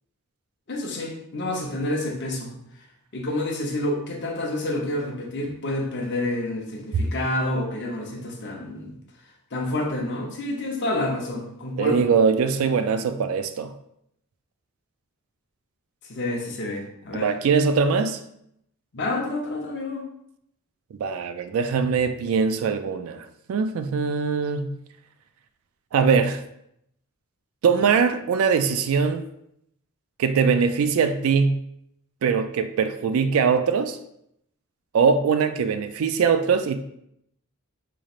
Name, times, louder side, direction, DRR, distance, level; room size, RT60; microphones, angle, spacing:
voice 1, 0.7-2.5 3.1-8.9 9.5-12.1 16.1-17.3 18.9-20.0, left 1 dB, 50° left, 0.8 m, -28 dB
voice 2, 11.8-13.7 17.1-18.2 20.9-24.7 25.9-26.4 27.6-29.2 30.2-31.6 32.2-34.0 34.9-36.8, right 5 dB, 70° right, 0.3 m, -22 dB
4.1 x 3.2 x 2.4 m
head